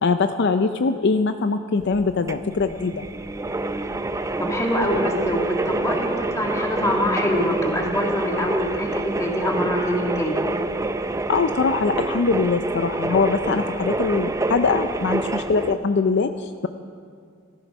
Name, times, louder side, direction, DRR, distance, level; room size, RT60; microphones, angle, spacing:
voice 1, 0.0-3.0 11.3-16.7, left 4 dB, 60° left, 9 dB, 0.5 m, -22 dB
sound 1, 1.8-15.8, right 2 dB, 15° right, 0.4 m, -27 dB
voice 2, 4.4-10.4, equal, 15° left, 0 dB, 1.9 m, -24 dB
14.5 x 12.5 x 6.0 m, 2.1 s
head